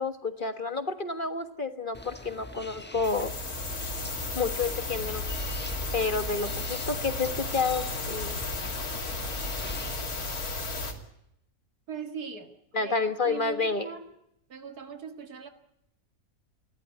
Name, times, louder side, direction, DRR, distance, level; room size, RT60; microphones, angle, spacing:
voice 1, 0.0-3.3 4.3-5.2 5.9-8.4 12.7-13.9, left 4 dB, 35° left, 9 dB, 1.6 m, -30 dB
sound 1, 1.9-10.0, left 1 dB, 10° left, 1.1 m, -44 dB
sound 2, 3.0-10.9, left 2 dB, 80° left, 3.2 m, -34 dB
voice 2, 11.9-12.9 13.2-14.1 14.5-15.5, right 6 dB, 90° right, 7 dB, 2.4 m, -40 dB
29.5 x 12.5 x 9.4 m, 0.80 s
omnidirectional pair, 1.6 m